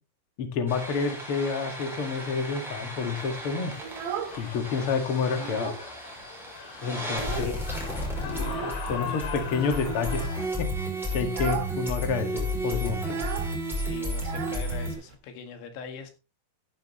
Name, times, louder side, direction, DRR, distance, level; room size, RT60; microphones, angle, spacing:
voice 1, 0.4-3.7 4.4-5.7 6.8-7.5 8.2-10.3 10.6-13.2, left 5 dB, 90° left, 1.2 m, -29 dB
sound 1, 0.7-14.9, equal, ahead, 5.4 m, -33 dB
sound 2, 2.9-10.5, left 5 dB, 50° left, 3.8 m, -41 dB
Child speech kid speaking, 3.7-4.8 5.1-5.9 6.2-6.3 6.6-7.7 8.4-8.9 9.7-10.2 10.6-10.8 11.2-11.8 12.0-12.1 12.4-15.2, right 8 dB, 65° right, 3.6 m, -37 dB
voice 2, 7.0-7.6 13.7-16.1, left 6 dB, 70° left, 4.1 m, -42 dB
14.5 x 10.0 x 3.1 m
omnidirectional pair, 5.7 m